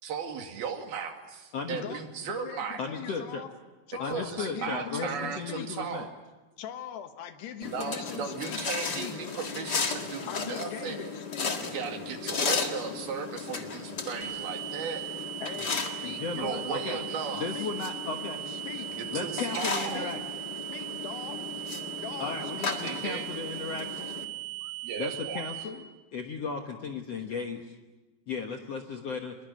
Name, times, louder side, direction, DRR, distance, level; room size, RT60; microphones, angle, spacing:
voice 1, 0.0-2.8 4.1-6.1 7.6-11.2 11.6-15.0 16.3-17.5 19.0-20.1 22.8-23.2 24.8-25.5, right 6 dB, 70° right, 4 dB, 4.1 m, -36 dB
voice 2, 1.7-3.5 3.9-5.7 6.6-8.6 8.9-9.2 10.3-11.6 15.4-16.8 17.4-17.7 18.5-19.0 19.7-20.2 20.7-21.4 22.0-22.7 24.6-24.7, left 9 dB, 80° left, 8 dB, 3.5 m, -41 dB
voice 3, 2.8-3.4 4.0-6.1 16.0-17.1 17.3-18.4 19.1-20.2 22.2-24.1 25.0-27.7 28.3-29.4, left 4 dB, 60° left, 3 dB, 1.7 m, -35 dB
sound 1, 7.6-24.2, left 5 dB, 45° left, 1.3 m, -36 dB
sound 2, 14.2-25.6, right 16 dB, 25° right, 4.6 m, -39 dB
25.0 x 22.0 x 9.2 m, 1.1 s
omnidirectional pair, 4.7 m